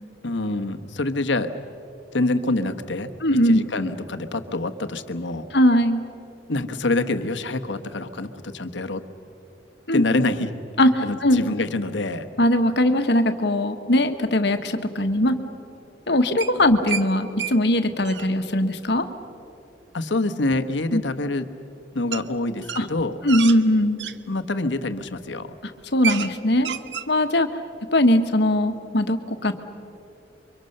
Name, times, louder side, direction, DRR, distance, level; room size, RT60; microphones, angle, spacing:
voice 1, 0.2-1.5 2.1-5.5 6.5-9.0 9.9-10.5 11.0-12.3 19.9-21.5 21.9-23.2 24.3-25.6, left 2 dB, 90° left, 9 dB, 1.3 m, -26 dB
voice 2, 3.2-3.6 5.5-6.0 9.9-10.0 10.8-11.4 12.4-15.3 16.1-19.0 20.9-21.0 22.8-22.9 23.2-24.0 25.9-26.7 27.1-27.5 27.9-29.5, left 1 dB, 65° left, 7 dB, 1.4 m, -20 dB
sound 1, 16.4-17.1 17.4-17.5 17.8-18.3 20.5-20.6 22.1-22.2 22.6-24.2 24.8-25.1 25.4-25.5 25.8-26.3 26.6-27.1, right 8 dB, 75° right, 0.8 m, -30 dB
29.0 x 24.0 x 6.7 m, 2.7 s
head